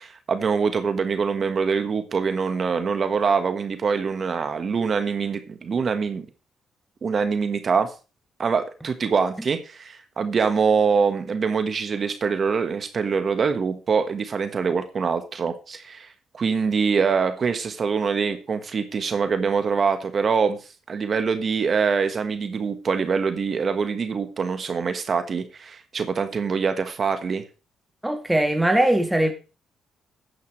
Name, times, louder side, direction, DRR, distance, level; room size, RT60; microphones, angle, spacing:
voice 1, 0.0-6.2 7.0-7.9 8.4-27.4, right 5 dB, 45° right, 1.3 m, -24 dB
voice 2, 28.0-29.3, right 1 dB, 5° right, 1.5 m, -20 dB
13.0 x 9.4 x 3.2 m
cardioid pair, 90°, 0 cm